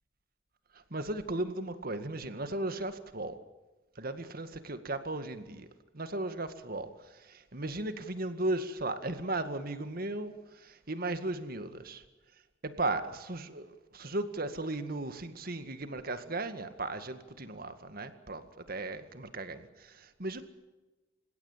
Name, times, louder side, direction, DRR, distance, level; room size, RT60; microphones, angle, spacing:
voice 1, 0.9-3.4 4.0-5.7 5.9-6.9 7.2-12.0 12.6-18.4 18.7-20.5, right 2 dB, 50° right, 10 dB, 2.0 m, -36 dB
29.0 x 17.0 x 7.5 m, 1.1 s
head